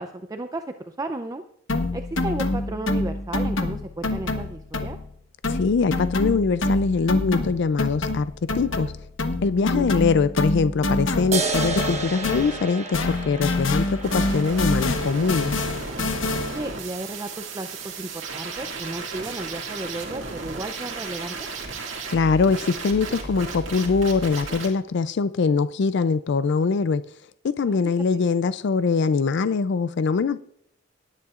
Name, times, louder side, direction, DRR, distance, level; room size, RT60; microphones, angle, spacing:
voice 1, 0.0-1.4 1.9-5.0 9.6-9.9 16.4-21.5 27.6-27.8, right 2 dB, 20° right, 0.5 m, -34 dB
sound 1, 1.7-5.2 5.4-12.7 12.9-16.7, left 2 dB, 85° left, 1.2 m, -27 dB
voice 2, 5.5-8.9 9.4-15.5 22.1-27.0 27.4-30.4, left 4 dB, 65° left, 0.4 m, -22 dB
sound 2, 11.3-18.3, right 3 dB, 35° right, 1.3 m, -33 dB
sound 3, 14.0-24.7, right 3 dB, 80° right, 2.1 m, -34 dB
19.0 x 9.8 x 2.5 m
head